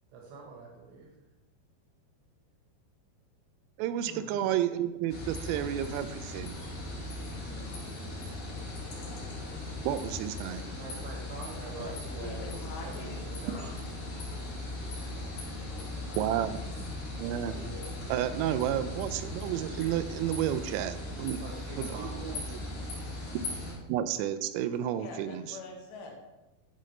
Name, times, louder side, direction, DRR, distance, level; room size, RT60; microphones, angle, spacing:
voice 1, 0.1-1.1 7.3-7.8 10.8-14.2 15.1-15.6 21.4-22.3, right 4 dB, 70° right, -1 dB, 2.9 m, -46 dB
voice 2, 3.8-6.6 9.8-10.7 16.2-17.6 18.1-21.4 21.8-22.6 23.9-25.6, right 11 dB, 90° right, 11 dB, 3.2 m, -31 dB
sound 1, 5.1-23.7, left 2 dB, 50° left, 4.1 m, -38 dB
voice 3, 11.8-13.3 15.7-16.6 24.9-26.1, left 3 dB, 80° left, 0 dB, 3.6 m, -45 dB
11.5 x 5.2 x 3.2 m, 1.0 s
omnidirectional pair, 5.8 m